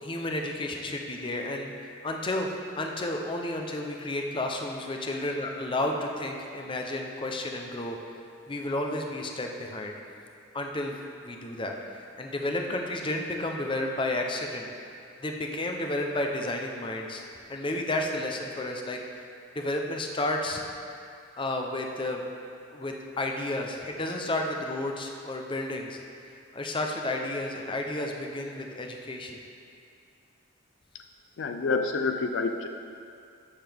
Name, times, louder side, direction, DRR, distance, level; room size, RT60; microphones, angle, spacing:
voice 1, 0.0-2.5 2.8-8.0 8.5-10.0 10.5-14.7 15.2-19.3 19.5-20.6 21.4-22.2 22.7-29.4, left 1 dB, 25° left, 2 dB, 0.7 m, -32 dB
voice 2, 31.4-32.7, left 4 dB, 65° left, 6 dB, 0.4 m, -28 dB
13.5 x 6.9 x 3.5 m, 2.4 s
head